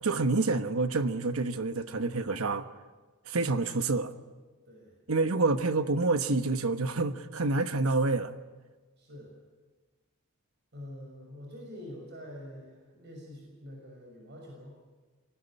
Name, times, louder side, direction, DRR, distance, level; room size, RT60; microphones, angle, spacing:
voice 1, 0.0-2.7 3.3-4.1 5.1-8.3, right 3 dB, 90° right, 1.1 m, -28 dB
voice 2, 4.7-5.0 9.0-9.3 10.7-14.8, left 1 dB, 55° right, 6.0 m, -46 dB
23.5 x 18.5 x 9.9 m
head